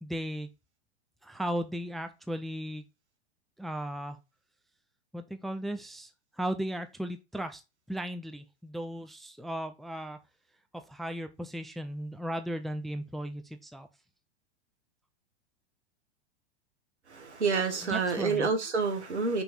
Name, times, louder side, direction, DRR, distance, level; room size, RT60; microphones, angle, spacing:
voice 1, 0.0-0.5 1.2-2.8 3.6-4.2 5.1-6.1 6.4-7.6 7.9-10.2 10.7-13.9 17.8-18.5, equal, ahead, 0.6 m, -36 dB
voice 2, 17.1-19.4, right 4 dB, 85° right, 2.0 m, -28 dB
6.0 x 3.5 x 5.7 m
hypercardioid pair, 100°, 33 cm